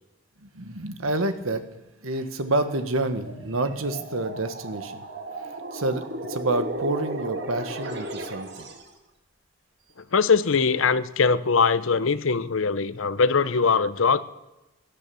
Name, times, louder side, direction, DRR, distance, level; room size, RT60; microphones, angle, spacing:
voice 1, 0.4-1.7 2.0-5.1 5.4-8.7, right 2 dB, 90° right, 9 dB, 1.4 m, -28 dB
sound 1, 3.2-8.9, right 1 dB, 55° right, 1.9 m, -35 dB
voice 2, 10.1-14.3, left 5 dB, 75° left, 15 dB, 0.7 m, -21 dB
17.0 x 12.0 x 7.0 m, 0.99 s
head